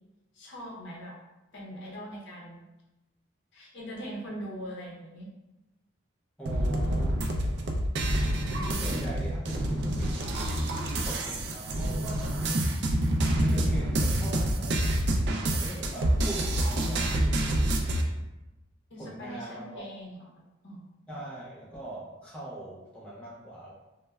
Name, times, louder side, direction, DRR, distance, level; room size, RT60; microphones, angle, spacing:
voice 1, 0.3-1.2 1.5-2.6 3.5-5.3 18.9-20.9, equal, 65° left, -4 dB, 0.6 m, -41 dB
voice 2, 6.4-7.2 8.4-10.5 10.9-13.0 13.4-14.8 15.4-17.3 19.0-19.8 21.1-23.7, right 1 dB, 5° left, -8 dB, 0.5 m, -40 dB
sound 1, 6.5-18.0, right 1 dB, 60° right, 0.3 m, -27 dB
3.1 x 2.0 x 2.2 m, 1.0 s
head